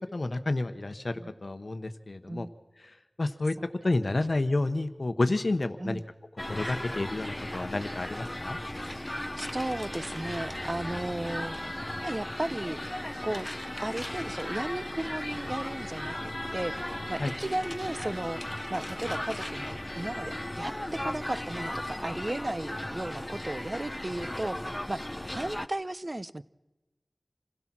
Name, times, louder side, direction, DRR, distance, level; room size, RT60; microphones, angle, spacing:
voice 1, 0.1-2.5 2.8-3.6 3.8-6.0 6.5-8.6 17.2-17.3, left 2 dB, 65° left, 10 dB, 1.0 m, -30 dB
sound 1, 6.4-25.7, left 1 dB, 20° left, 0.8 m, -36 dB
voice 2, 9.4-11.6 12.0-12.8 13.2-13.4 13.8-16.7 17.1-18.4 18.7-20.7 21.0-26.4, right 1 dB, 40° right, 16 dB, 0.7 m, -35 dB
27.5 x 16.5 x 6.1 m, 1.0 s
wide cardioid pair, 45°, 0 cm